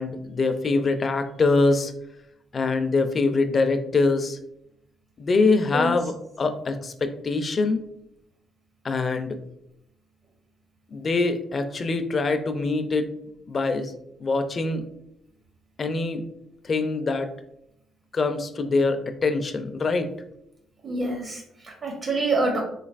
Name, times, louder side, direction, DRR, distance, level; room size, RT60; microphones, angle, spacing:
voice 1, 0.0-1.9 2.5-4.4 5.2-7.8 8.8-9.4 10.9-13.1 13.5-13.9 14.2-14.8 15.8-16.2 16.6-17.3 18.1-20.1, left 3 dB, 40° left, 8 dB, 0.4 m, -24 dB
voice 2, 20.8-22.6, right 2 dB, 45° right, 0 dB, 0.7 m, -26 dB
3.8 x 3.1 x 2.4 m, 0.77 s
cardioid pair, 90°, 0 cm